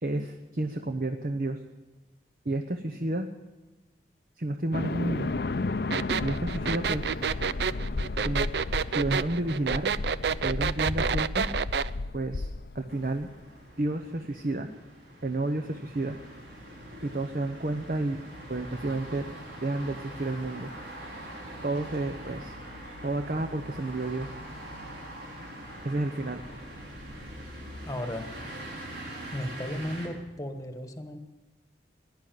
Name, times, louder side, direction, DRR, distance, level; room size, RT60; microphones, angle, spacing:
voice 1, 0.0-1.6 2.4-3.3 4.4-5.3 6.2-7.1 8.2-8.5 8.9-10.0 10.4-11.5 12.1-12.5 12.7-13.3 13.8-14.7 15.2-16.2 17.0-18.2 18.5-19.3 19.6-20.7 21.6-22.5 23.0-24.3 25.8-26.4, right 2 dB, 50° right, 6 dB, 0.9 m, -30 dB
sound 1, 4.7-13.2, left 3 dB, 65° left, 0.6 m, -33 dB
sound 2, 5.9-11.9, right 6 dB, 70° right, 0.4 m, -28 dB
sound 3, 12.9-30.1, right 1 dB, 90° right, 4.6 m, -43 dB
voice 2, 27.9-28.3 29.3-31.2, left 1 dB, 20° left, 7 dB, 1.3 m, -35 dB
16.5 x 11.0 x 7.6 m, 1.1 s
head